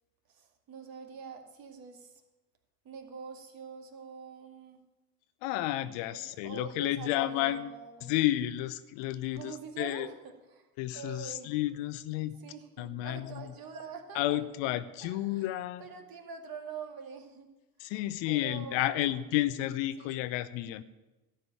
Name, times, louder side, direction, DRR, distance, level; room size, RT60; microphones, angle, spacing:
voice 1, 0.3-2.2 2.8-4.8 6.1-8.1 9.3-10.7 10.9-11.5 12.3-14.4 15.0-15.4 15.8-17.5 17.8-17.9 18.3-19.1 20.0-20.2, right 6 dB, 45° right, 4 dB, 2.1 m, -45 dB
voice 2, 5.4-7.7 8.0-10.1 10.8-12.4 12.8-13.5 14.1-15.8 17.8-20.8, left 14 dB, 65° left, 14 dB, 0.8 m, -31 dB
13.0 x 5.3 x 8.9 m, 1.1 s
hypercardioid pair, 75°, 47 cm